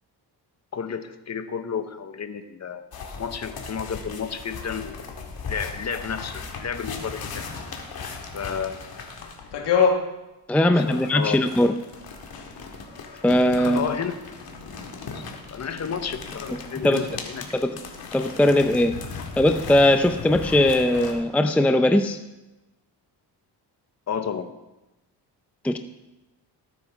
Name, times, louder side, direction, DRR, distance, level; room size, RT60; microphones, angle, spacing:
voice 1, 0.7-2.9 3.2-7.5 8.3-8.9 10.8-11.4 13.6-14.1 15.1-15.2 15.5-17.6 24.1-24.5, left 7 dB, 40° left, 9 dB, 1.0 m, -31 dB
sound 1, 2.9-9.5 10.7-21.1, left 4 dB, 60° left, 2.0 m, -38 dB
sound 2, 9.2-11.4 11.7-19.4, left 5 dB, 75° left, 1.7 m, -31 dB
voice 2, 10.5-11.7 13.2-13.9 16.8-17.0 17.5-17.8 18.1-18.9 19.4-22.2 25.6-25.8, left 1 dB, 5° left, 8 dB, 0.5 m, -19 dB
17.5 x 9.5 x 3.5 m, 1.0 s
cardioid pair, 95°, 42 cm